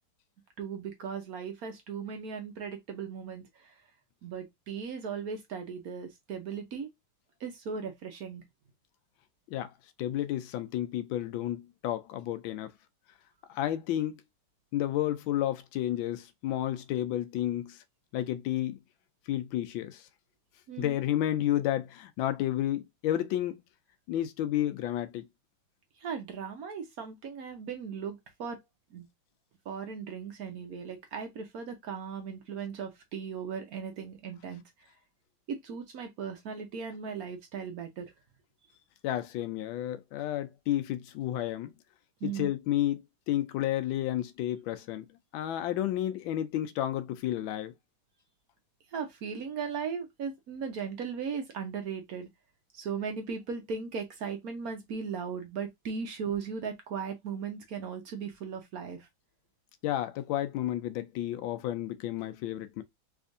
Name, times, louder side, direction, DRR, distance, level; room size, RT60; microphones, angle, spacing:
voice 1, 0.6-3.7 4.2-6.9 7.4-8.4 20.7-21.0 26.0-28.6 28.9-29.1 29.7-34.9 35.5-38.1 42.2-42.5 48.9-52.3 52.7-59.1, right 6 dB, 60° right, 1.0 m, -37 dB
voice 2, 10.0-12.7 13.5-14.2 14.7-17.8 18.1-18.8 19.3-20.0 20.8-23.6 24.1-25.3 39.0-41.7 42.2-47.7 59.8-62.8, left 12 dB, 80° left, 1.3 m, -31 dB
3.5 x 3.2 x 2.5 m
omnidirectional pair, 2.2 m